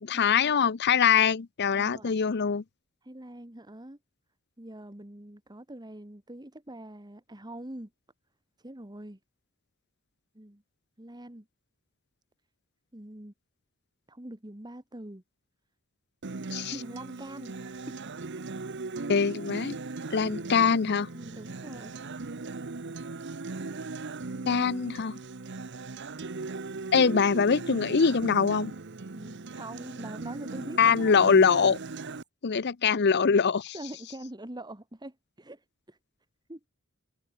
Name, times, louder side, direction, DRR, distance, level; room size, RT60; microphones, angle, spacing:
voice 1, 0.0-2.6 16.5-16.7 19.1-19.8 20.1-21.1 24.5-25.2 26.9-28.7 30.8-31.8 32.4-33.7, left 6 dB, 55° left, 0.6 m, -23 dB
voice 2, 1.7-2.2 3.0-4.0 4.6-7.9 8.6-9.2 10.3-10.6 11.0-11.5 12.9-13.3 14.1-15.2 16.7-18.0 21.1-21.9 29.1-31.1 33.7-36.0 36.5-36.6, right 1 dB, 20° right, 1.8 m, -44 dB
Acoustic guitar, 16.2-32.2, right 3 dB, 60° right, 0.9 m, -38 dB
head